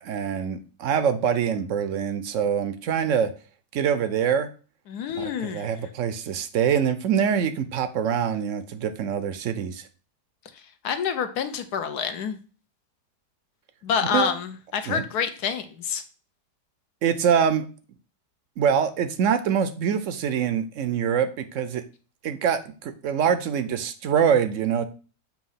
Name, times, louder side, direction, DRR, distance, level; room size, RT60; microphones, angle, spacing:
voice 1, 0.0-3.3 3.7-4.5 5.1-9.9 14.1-14.3 14.9-15.0 17.0-17.6 18.6-21.8 22.2-24.9, right 8 dB, 65° right, 11 dB, 0.8 m, -24 dB
voice 2, 4.9-5.7 10.8-12.4 13.8-16.0, left 7 dB, 75° left, 8 dB, 1.3 m, -27 dB
7.2 x 3.0 x 5.6 m, 0.37 s
omnidirectional pair, 1.7 m